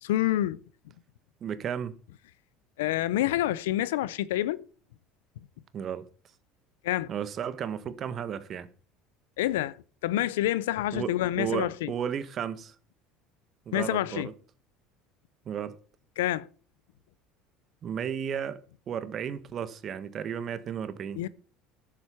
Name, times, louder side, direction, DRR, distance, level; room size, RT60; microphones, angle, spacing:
voice 1, 0.0-0.6 2.8-4.7 6.8-7.1 9.4-9.8 10.0-11.9 13.7-14.3 16.2-16.5 21.1-21.3, left 14 dB, 90° left, 0.6 m, -27 dB
voice 2, 1.4-1.9 5.7-6.1 7.1-8.7 10.9-12.7 13.7-14.3 15.4-15.8 17.8-18.6 18.9-21.2, right 8 dB, 45° right, 1.4 m, -33 dB
10.5 x 7.7 x 7.1 m
supercardioid pair, 95°, 0 cm